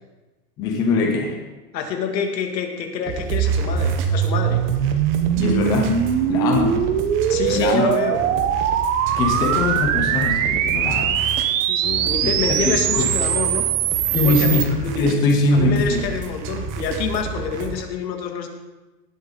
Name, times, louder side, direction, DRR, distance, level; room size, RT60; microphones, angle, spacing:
voice 1, 0.6-1.4 5.4-6.0 6.3-6.7 7.5-8.0 9.2-11.2 12.5-13.0 14.1-16.0, left 3 dB, 10° left, 2 dB, 0.4 m, -21 dB
voice 2, 1.7-4.6 7.3-8.2 11.7-13.7 14.1-14.6 15.5-18.5, left 6 dB, 85° left, 4 dB, 2.2 m, -27 dB
sound 1, 3.1-17.8, right 5 dB, 25° right, 0.9 m, -32 dB
sound 2, 3.3-14.7, right 9 dB, 50° right, 0.9 m, -21 dB
18.0 x 7.2 x 3.8 m, 1.1 s
supercardioid pair, 155°, 49 cm